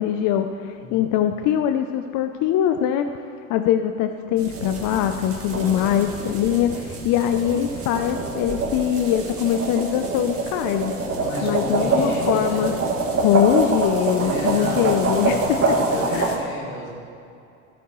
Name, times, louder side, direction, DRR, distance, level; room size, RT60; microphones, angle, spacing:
voice 1, 0.0-3.1 3.5-10.9 11.4-12.7 13.2-16.3, left 10 dB, 50° left, 7 dB, 0.6 m, -22 dB
sound 1, 4.4-16.4, right 3 dB, 35° right, 2.1 m, -25 dB
voice 2, 11.2-12.7 14.1-16.9, left 2 dB, 85° left, -4 dB, 3.1 m, -33 dB
13.0 x 12.5 x 3.1 m, 2.5 s
hypercardioid pair, 85°, 40 cm